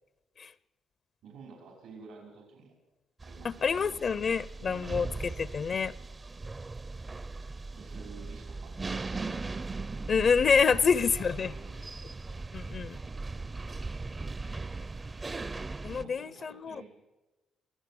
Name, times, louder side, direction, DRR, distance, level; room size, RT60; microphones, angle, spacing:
voice 1, 1.2-2.8 3.2-4.0 4.6-5.1 7.8-9.4 10.8-11.9 13.1-14.3 15.9-16.8, right 5 dB, 90° right, 5.3 m, -51 dB
sound 1, 3.2-16.0, right 3 dB, 25° right, 0.6 m, -39 dB
voice 2, 3.4-5.9 10.1-11.5 12.5-13.0 15.8-16.8, left 6 dB, 50° left, 0.6 m, -27 dB
23.0 x 15.0 x 7.8 m
cardioid pair, 90°, 0 cm